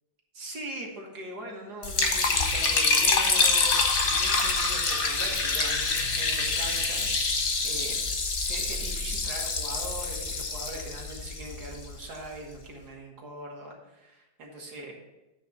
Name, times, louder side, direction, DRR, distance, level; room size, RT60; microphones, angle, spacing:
voice 1, 0.3-8.0 8.4-14.9, right 1 dB, 55° right, -1 dB, 2.0 m, -41 dB
Liquid, 1.8-12.0, left 4 dB, 45° left, 0.7 m, -26 dB
9.0 x 3.2 x 6.5 m, 0.99 s
omnidirectional pair, 2.1 m